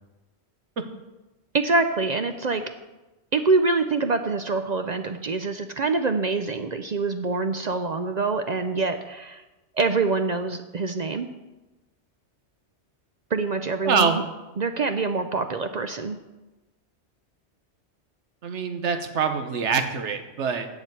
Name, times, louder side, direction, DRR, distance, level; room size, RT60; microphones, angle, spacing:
voice 1, 1.5-2.6 3.3-9.4 9.8-11.3 13.3-14.2 14.6-16.2, right 3 dB, 50° right, 8 dB, 0.5 m, -25 dB
voice 2, 13.8-14.2 18.4-20.7, right 6 dB, 90° right, 7 dB, 1.3 m, -24 dB
7.8 x 7.1 x 7.9 m, 1.1 s
omnidirectional pair, 1.2 m